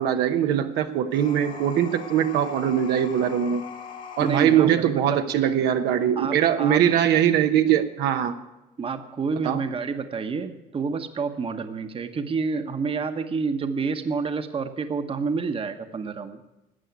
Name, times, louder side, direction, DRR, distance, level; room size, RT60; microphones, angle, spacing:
voice 1, 0.0-3.6 4.2-8.4 9.4-9.6, right 9 dB, 80° right, 7 dB, 1.0 m, -21 dB
sound 1, 1.1-4.6, left 6 dB, 55° left, 1.9 m, -40 dB
voice 2, 4.2-5.5 6.2-6.8 8.8-16.4, right 5 dB, 35° right, 8 dB, 1.1 m, -29 dB
13.0 x 8.4 x 9.3 m, 0.98 s
cardioid pair, 110°, 17 cm